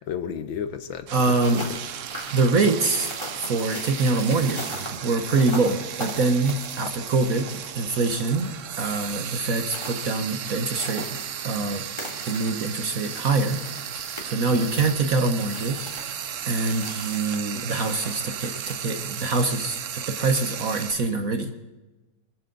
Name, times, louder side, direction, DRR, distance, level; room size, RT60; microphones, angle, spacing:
voice 1, 0.0-2.0 6.7-7.0 14.5-14.9, left 8 dB, 70° left, 10 dB, 1.7 m, -34 dB
voice 2, 1.1-1.6 2.3-8.5 8.8-11.1 11.4-11.8 12.2-13.6 14.2-15.9 16.4-21.5, right 3 dB, 50° right, 7 dB, 1.4 m, -24 dB
Frying (food), 1.1-20.9, right 9 dB, 70° right, 0.7 m, -35 dB
sound 1, 1.2-19.5, left 1 dB, 15° left, 2.8 m, -42 dB
24.5 x 14.5 x 4.0 m, 1.1 s
omnidirectional pair, 2.2 m